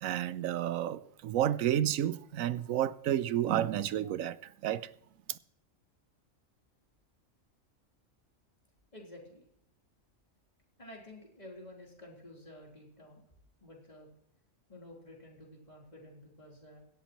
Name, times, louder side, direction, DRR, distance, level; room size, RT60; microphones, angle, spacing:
voice 1, 0.0-4.9 5.3-5.4, right 11 dB, 85° right, 1.1 m, -31 dB
voice 2, 8.9-9.5 10.8-13.2 13.6-14.1 14.7-16.8, left 1 dB, 30° left, 3.9 m, -51 dB
17.0 x 13.0 x 3.1 m
omnidirectional pair, 1.4 m